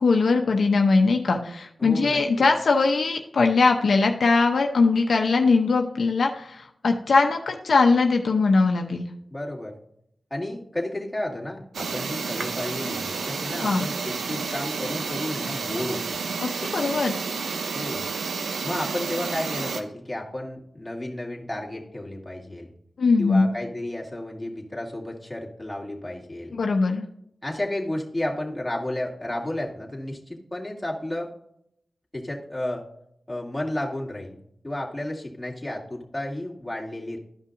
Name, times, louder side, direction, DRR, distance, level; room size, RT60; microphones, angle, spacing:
voice 1, 0.0-9.1 13.6-13.9 16.4-17.2 23.0-23.5 26.5-27.1, left 4 dB, 75° left, 3 dB, 0.7 m, -21 dB
voice 2, 1.8-2.5 9.3-9.8 10.3-16.2 17.7-18.0 18.6-22.7 23.2-26.6 27.4-31.3 32.1-32.8 33.3-37.2, left 1 dB, 15° left, -3 dB, 2.4 m, -32 dB
sound 1, 11.7-19.8, right 4 dB, 90° right, 0.7 m, -30 dB
12.5 x 5.4 x 2.6 m, 0.73 s
cardioid pair, 50°, 0 cm